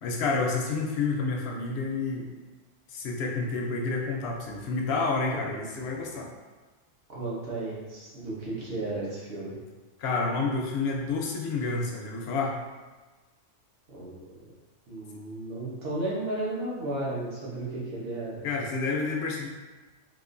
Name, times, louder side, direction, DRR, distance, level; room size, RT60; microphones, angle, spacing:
voice 1, 0.0-2.3 2.9-6.3 10.0-12.6 18.4-19.5, left 3 dB, 70° left, 0 dB, 0.8 m, -29 dB
voice 2, 7.1-9.5 13.9-14.3 14.9-18.4, right 2 dB, 55° right, -7 dB, 1.1 m, -34 dB
3.6 x 2.5 x 2.5 m, 1.3 s
omnidirectional pair, 1.2 m